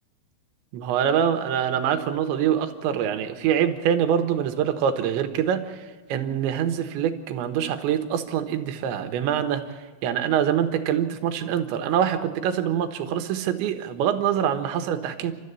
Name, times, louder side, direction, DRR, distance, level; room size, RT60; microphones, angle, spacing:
voice 1, 0.7-5.8 6.1-9.6 10.0-15.3, right 9 dB, 75° right, 8 dB, 3.4 m, -24 dB
29.5 x 13.5 x 8.3 m, 1.3 s
omnidirectional pair, 5.6 m